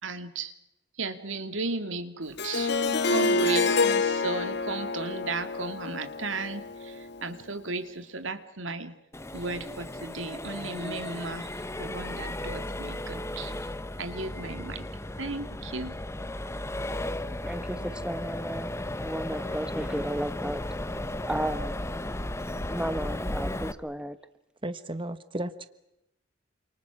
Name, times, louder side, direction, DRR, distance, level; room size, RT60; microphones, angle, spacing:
voice 1, 0.0-0.5 1.0-9.0 9.3-13.7 14.0-14.9 15.2-15.9, right 3 dB, 85° right, 2.5 m, -35 dB
Harp, 2.4-7.3, left 3 dB, 60° left, 1.6 m, -27 dB
Accelerating revving vroom, 9.1-23.7, left 1 dB, 15° left, 1.1 m, -35 dB
voice 2, 17.4-18.7 19.0-20.6 21.3-21.8 22.6-24.2, right 1 dB, 5° right, 1.2 m, -33 dB
voice 3, 24.6-25.7, right 1 dB, 25° right, 1.2 m, -34 dB
28.5 x 27.5 x 6.1 m
head